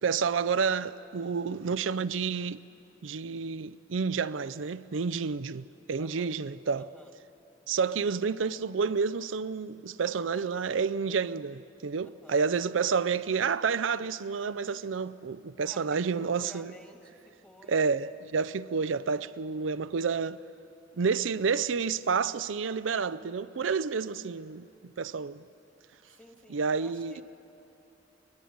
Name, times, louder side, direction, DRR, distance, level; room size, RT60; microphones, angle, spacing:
voice 1, 0.0-2.6 3.0-6.9 7.7-16.7 17.7-20.4 21.0-25.4 26.5-27.2, right 5 dB, 85° right, 0.5 m, -29 dB
voice 2, 6.0-6.4 6.7-7.1 12.2-12.4 15.7-18.0 26.2-27.2, left 1 dB, 5° left, 1.9 m, -53 dB
24.5 x 21.0 x 9.5 m
head